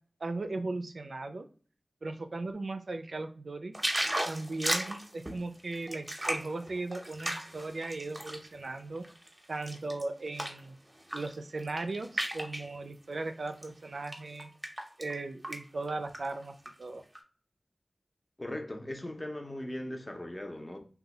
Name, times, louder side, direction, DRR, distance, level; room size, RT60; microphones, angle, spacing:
voice 1, 0.2-1.5 2.0-3.7 4.2-9.0 9.5-10.8 11.1-14.5 15.0-17.0, right 2 dB, 80° right, 0.3 m, -37 dB
sound 1, 3.7-8.5 9.0-10.6 11.0-11.3 11.6-12.7 13.5-13.6 14.1-15.1 15.4-15.6 15.9-16.7 17.1-17.2, right 1 dB, 25° right, 0.7 m, -35 dB
voice 2, 18.4-20.8, left 1 dB, 25° left, 0.6 m, -39 dB
2.7 x 2.2 x 4.0 m
wide cardioid pair, 65°, 0 cm